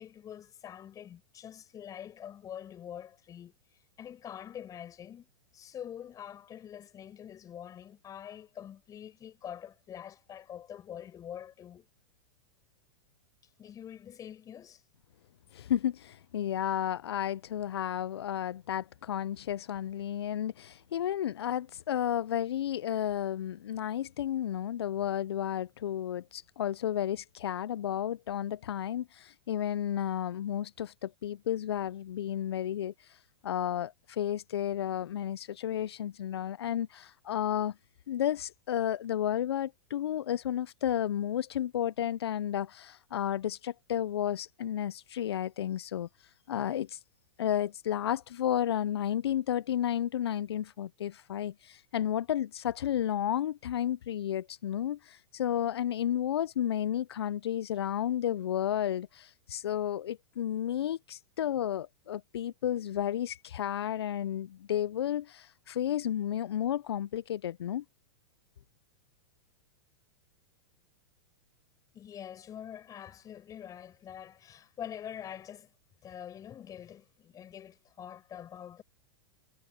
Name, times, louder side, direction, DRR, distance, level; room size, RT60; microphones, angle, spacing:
voice 1, 0.0-3.5 4.0-11.9 13.6-14.8 71.9-75.7 76.0-78.8, left 9 dB, 25° left, 5.8 m, -45 dB
voice 2, 15.5-32.9 33.4-37.7 38.1-46.1 46.5-47.0 47.4-67.8, left 10 dB, 85° left, 0.4 m, -32 dB
hypercardioid pair, 120°, 13 cm